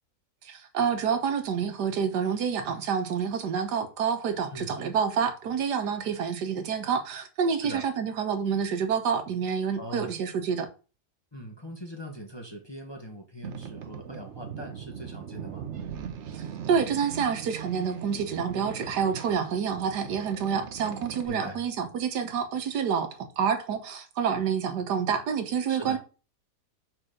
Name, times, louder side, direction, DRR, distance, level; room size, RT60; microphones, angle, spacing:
voice 1, 0.4-10.7 16.3-26.0, right 7 dB, 85° right, 1.6 m, -28 dB
voice 2, 7.5-7.9 9.7-10.1 11.3-15.7 21.2-21.7 25.7-26.0, equal, 20° left, 1.0 m, -41 dB
Boat Water vehicle, 13.4-21.3, right 8 dB, 55° right, 0.9 m, -40 dB
5.8 x 4.6 x 5.0 m
omnidirectional pair, 1.7 m